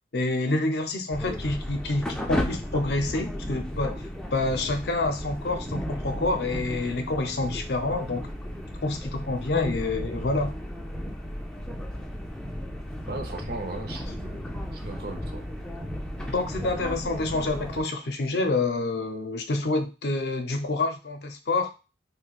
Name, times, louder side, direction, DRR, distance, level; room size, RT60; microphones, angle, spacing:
voice 1, 0.1-8.2 8.8-10.5 16.3-21.7, left 2 dB, 60° left, 6 dB, 0.5 m, -27 dB
sound 1, 1.1-17.8, equal, 5° left, 0.3 m, -34 dB
voice 2, 13.1-15.5, right 2 dB, 55° right, 5 dB, 0.6 m, -37 dB
2.6 x 2.1 x 3.9 m, 0.30 s
head